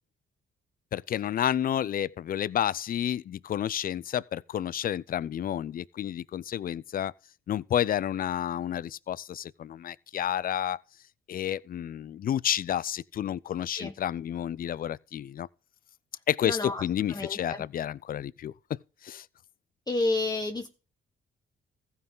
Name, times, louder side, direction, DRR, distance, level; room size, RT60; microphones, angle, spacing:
voice 1, 0.9-7.1 7.5-10.8 11.3-15.5 16.3-18.5 19.0-19.3, left 10 dB, 45° left, 0.4 m, -30 dB
voice 2, 16.4-16.8 17.1-17.6 19.9-20.7, left 2 dB, 20° left, 0.9 m, -30 dB
15.0 x 5.5 x 3.9 m
cardioid pair, 90°, 20 cm